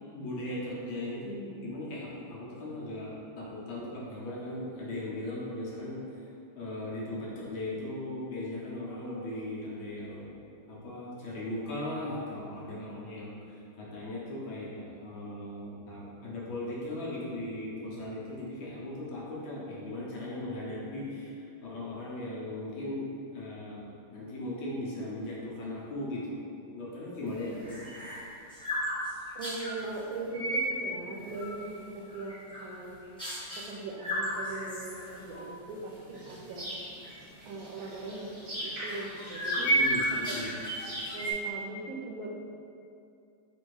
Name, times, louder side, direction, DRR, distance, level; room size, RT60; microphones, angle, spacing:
voice 1, 0.1-6.3 6.6-10.4 10.7-23.1 23.3-26.4 26.7-27.8 31.1-31.2 39.6-40.5, left 1 dB, 75° left, -6 dB, 1.8 m, -38 dB
sound 1, 27.3-29.8 30.3-30.7 31.2-31.7 32.1-32.8 33.2-33.7 34.0-35.4 35.8-35.9 36.3-36.5 37.0-37.2 38.6-41.3, right 1 dB, 5° left, 0.8 m, -33 dB
voice 2, 29.3-32.4 32.6-33.0 33.7-36.7 37.4-38.3 38.5-39.7 40.3-40.4 41.1-42.3, right 3 dB, 80° right, -1 dB, 1.4 m, -40 dB
sound 2, 36.1-41.3, equal, 40° right, 0.9 m, -42 dB
4.4 x 2.6 x 4.7 m, 2.5 s
omnidirectional pair, 2.2 m